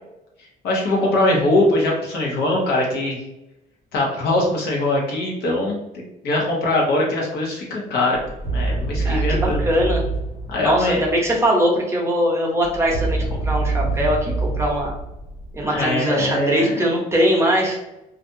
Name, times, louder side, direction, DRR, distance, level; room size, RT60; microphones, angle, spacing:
voice 1, 0.6-3.2 3.9-5.8 6.2-8.2 8.5-9.6 10.5-11.0 15.6-16.8, left 2 dB, 75° left, -1 dB, 0.9 m, -21 dB
sound 1, 8.1-11.4 12.6-15.9, right 3 dB, 90° left, 1.3 m, -26 dB
voice 2, 9.0-10.0 10.6-14.9 15.5-17.8, equal, 15° right, -2 dB, 0.7 m, -21 dB
2.5 x 2.3 x 2.6 m, 0.93 s
cardioid pair, 110°, 17 cm